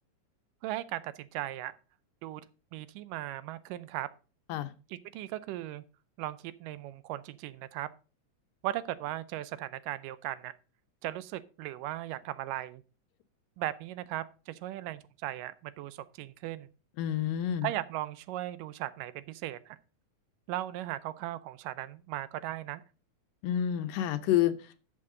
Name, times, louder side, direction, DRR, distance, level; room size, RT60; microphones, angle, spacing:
voice 1, 0.6-1.8 2.2-2.4 2.7-4.1 4.9-5.8 6.2-7.9 8.6-10.5 11.0-12.8 13.6-16.7 17.6-19.8 20.5-22.8, right 14 dB, 80° right, 2.3 m, -37 dB
voice 2, 17.0-17.7 23.4-24.6, left 11 dB, 80° left, 2.5 m, -28 dB
12.0 x 7.4 x 3.7 m
omnidirectional pair, 3.9 m